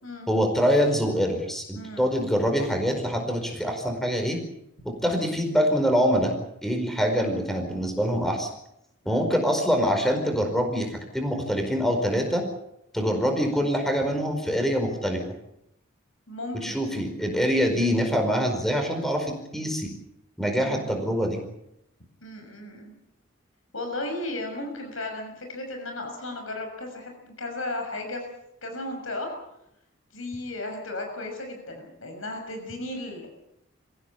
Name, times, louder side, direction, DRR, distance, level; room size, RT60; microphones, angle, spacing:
voice 1, 0.3-4.4 4.8-6.3 6.6-8.5 9.0-12.4 12.9-15.2 16.5-19.9 20.4-21.4, equal, ahead, 4 dB, 4.8 m, -25 dB
voice 2, 1.7-2.1 9.0-9.3 16.3-16.8 20.6-20.9 22.2-22.9 23.7-28.2 28.6-29.3 30.1-33.3, left 2 dB, 75° left, 4 dB, 6.4 m, -35 dB
27.0 x 16.0 x 8.5 m, 0.79 s
head